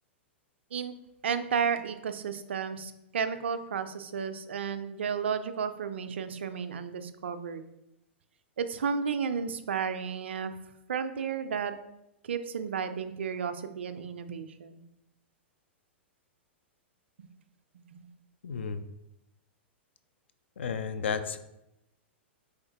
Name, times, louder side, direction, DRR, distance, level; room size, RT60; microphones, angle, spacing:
voice 1, 1.2-7.7 8.6-10.5 10.9-11.7 12.3-14.9 17.9-18.0, right 6 dB, 70° right, 10 dB, 0.3 m, -33 dB
voice 2, 18.4-18.8 20.6-21.4, left 6 dB, 70° left, 10 dB, 0.3 m, -32 dB
3.6 x 3.4 x 2.8 m, 0.86 s
figure-of-eight pair, 100°, 6 cm